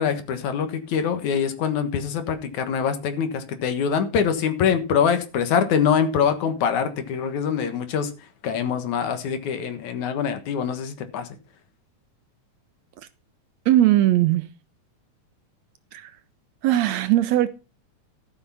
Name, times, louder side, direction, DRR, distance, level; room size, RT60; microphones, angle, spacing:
voice 1, 0.0-8.1 8.4-11.3, left 7 dB, 70° left, 2.8 m, -24 dB
voice 2, 13.7-14.5 15.9-16.1 16.6-17.5, right 13 dB, 75° right, 1.7 m, -19 dB
13.0 x 6.6 x 5.7 m
omnidirectional pair, 3.5 m